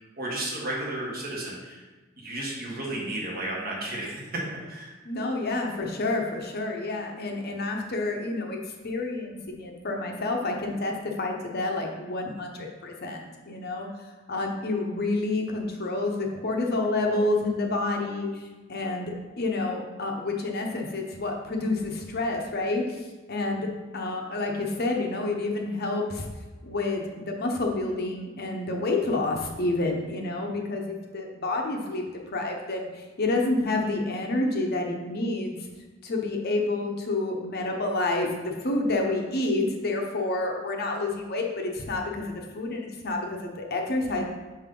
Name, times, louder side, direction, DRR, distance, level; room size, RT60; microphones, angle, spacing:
voice 1, 0.1-1.8 2.2-4.9, right 1 dB, 50° right, -4 dB, 1.5 m, -33 dB
voice 2, 5.0-8.6 8.8-23.7 23.9-26.3 26.6-32.0 32.3-35.6 36.0-44.2, left 2 dB, 55° left, 1 dB, 0.8 m, -29 dB
5.5 x 4.6 x 3.8 m, 1.2 s
head